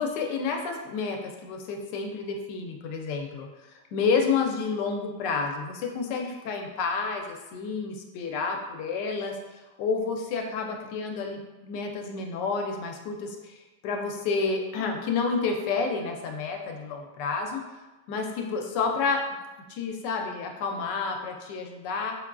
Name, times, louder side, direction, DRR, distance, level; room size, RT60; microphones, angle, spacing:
voice 1, 0.0-3.5 3.9-9.4 9.8-13.6 13.8-17.6 18.1-19.2 19.7-22.2, left 4 dB, 90° left, 3 dB, 1.2 m, -30 dB
5.7 x 2.4 x 2.2 m, 1.1 s
omnidirectional pair, 1.8 m